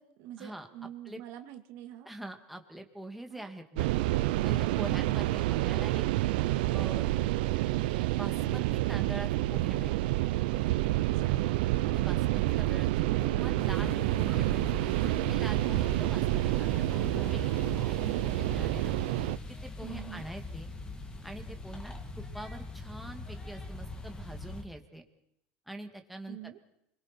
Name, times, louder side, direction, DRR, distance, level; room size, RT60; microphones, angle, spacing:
voice 1, 0.0-2.1 3.3-3.5 11.0-11.4 15.7-16.0 19.8-20.3 26.3-26.6, right 12 dB, 65° right, 7 dB, 2.1 m, -46 dB
voice 2, 2.1-3.9 4.4-6.0 6.7-7.1 8.1-10.1 11.9-14.8 15.3-18.9 19.5-20.7 21.2-25.0 25.7-26.6, right 1 dB, ahead, 4 dB, 2.3 m, -44 dB
sound 1, 3.8-19.4, right 17 dB, 85° right, 0.8 m, -28 dB
sound 2, 13.6-24.6, left 2 dB, 15° left, 2.7 m, -42 dB
29.5 x 23.0 x 4.5 m, 0.78 s
supercardioid pair, 125°, 5 cm